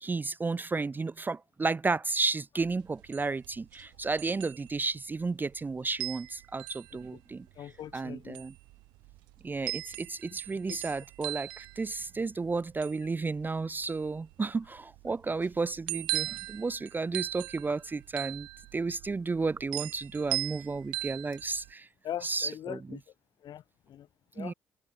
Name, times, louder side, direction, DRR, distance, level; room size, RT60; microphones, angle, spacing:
voice 1, 0.0-7.5 7.9-8.5 9.4-18.5 18.7-21.9 22.2-22.8 24.4-24.5, right 3 dB, 25° right, 0.4 m, -32 dB
sound 1, 2.6-21.7, right 21 dB, 80° right, 0.9 m, -40 dB
voice 2, 7.5-8.4 10.3-10.8 22.0-23.0 23.4-24.1 24.3-24.5, left 11 dB, 65° left, 2.2 m, -41 dB
hypercardioid pair, 50°, 8 cm